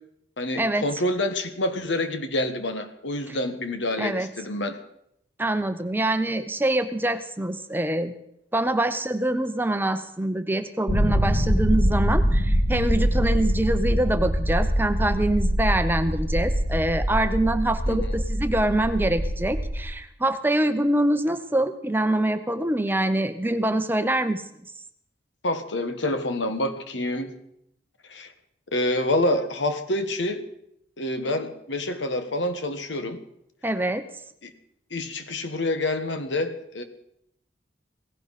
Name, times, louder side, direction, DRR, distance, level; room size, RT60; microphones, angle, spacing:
voice 1, 0.4-4.8 17.9-18.1 25.4-27.3 28.1-28.3 28.7-30.4 31.0-33.2 34.4-34.5 34.9-36.8, left 1 dB, 80° left, 8 dB, 1.5 m, -27 dB
voice 2, 4.0-4.3 5.4-8.1 8.5-24.4 33.6-34.1, right 1 dB, 10° right, 9 dB, 0.7 m, -25 dB
sound 1, 10.9-19.8, equal, 60° left, 3.4 m, -24 dB
17.0 x 16.0 x 4.2 m, 0.78 s
head